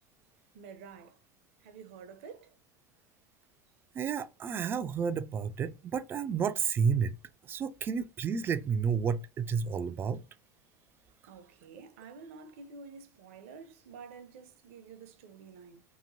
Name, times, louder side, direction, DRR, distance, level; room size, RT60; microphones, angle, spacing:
voice 1, 0.5-1.2 1.6-2.6 11.3-15.8, right 5 dB, 70° right, 0.6 m, -49 dB
voice 2, 3.9-7.1 7.4-10.2, right 6 dB, 30° right, 0.3 m, -31 dB
2.9 x 2.6 x 2.6 m
hypercardioid pair, 100°, 8 cm